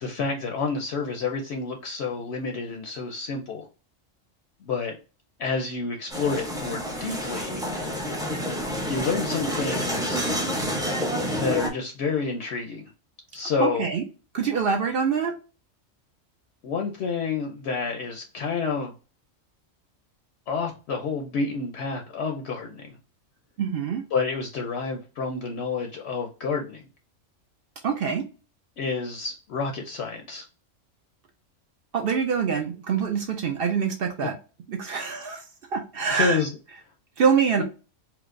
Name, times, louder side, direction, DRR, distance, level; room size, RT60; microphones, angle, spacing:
voice 1, 0.0-3.7 4.6-5.0 5.4-7.6 8.9-10.2 11.4-12.9 13.3-13.9 16.6-18.9 20.5-23.0 24.1-26.8 28.8-30.4 34.9-35.0 36.1-36.5 37.6-37.7, left 4 dB, 65° left, 3 dB, 0.8 m, -29 dB
sound 1, 6.1-11.7, equal, 5° right, 0.3 m, -28 dB
voice 2, 13.6-14.0 14.3-15.3 23.6-24.0 27.8-28.2 31.9-34.4 34.7-35.4 35.7-36.4 37.2-37.6, right 6 dB, 60° right, 3 dB, 0.6 m, -25 dB
4.5 x 2.0 x 2.5 m, 0.33 s
omnidirectional pair, 1.3 m